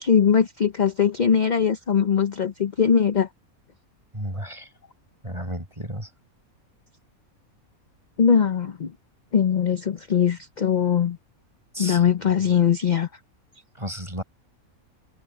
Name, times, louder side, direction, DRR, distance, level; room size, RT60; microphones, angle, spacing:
voice 1, 0.0-3.3 8.2-8.9 9.3-11.2 11.8-13.1, left 7 dB, 40° left, 0.7 m, -21 dB
voice 2, 4.1-4.7 5.2-6.1 11.7-12.0 13.8-14.2, equal, 20° right, 6.3 m, -33 dB
omnidirectional pair, 1.5 m